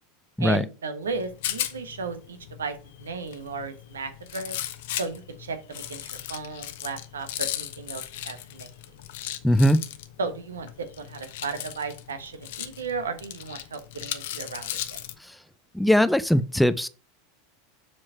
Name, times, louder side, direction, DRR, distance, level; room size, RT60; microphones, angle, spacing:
voice 1, 0.4-4.5 5.0-8.7 10.2-15.0, right 4 dB, 75° right, 1.0 m, -35 dB
Rattle, 1.0-15.2, left 12 dB, 60° left, 0.7 m, -37 dB
voice 2, 9.4-9.8 15.2-15.4 15.7-16.9, equal, ahead, 0.5 m, -20 dB
7.3 x 4.5 x 4.5 m
figure-of-eight pair, 85°, 0 cm